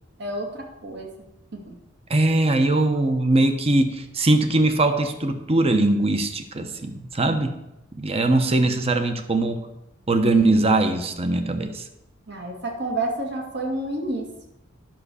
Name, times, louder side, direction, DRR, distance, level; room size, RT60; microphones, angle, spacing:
voice 1, 0.2-1.1 1.5-1.7 12.3-14.3, right 2 dB, 60° right, 1 dB, 2.1 m, -29 dB
voice 2, 2.1-7.5 7.9-9.6 10.1-11.8, right 2 dB, 30° right, 8 dB, 0.9 m, -21 dB
10.5 x 6.1 x 6.9 m, 0.90 s
head